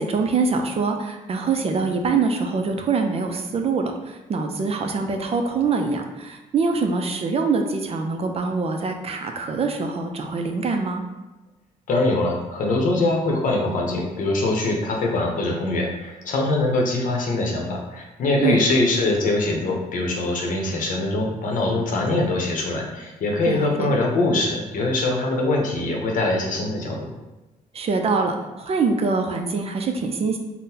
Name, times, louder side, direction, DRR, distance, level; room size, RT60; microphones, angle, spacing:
voice 1, 0.0-11.0 18.4-18.6 23.5-23.9 27.7-30.4, right 4 dB, 45° right, 4 dB, 0.4 m, -24 dB
voice 2, 11.9-27.1, left 2 dB, 60° left, 0 dB, 0.7 m, -23 dB
3.7 x 2.1 x 2.8 m, 1.1 s
cardioid pair, 80°, 15 cm